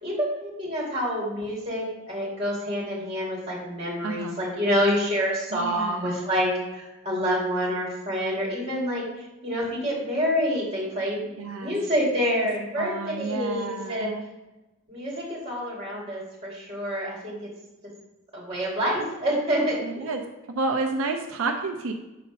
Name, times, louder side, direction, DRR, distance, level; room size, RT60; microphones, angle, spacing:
voice 1, 0.0-14.1 14.9-17.4 18.3-20.1, equal, 30° right, -4 dB, 2.5 m, -27 dB
voice 2, 4.0-4.4 5.5-6.1 11.4-11.7 12.8-14.3 19.8-20.2 20.5-21.9, right 3 dB, 90° right, 3 dB, 0.6 m, -30 dB
6.6 x 4.2 x 5.3 m, 1.0 s
head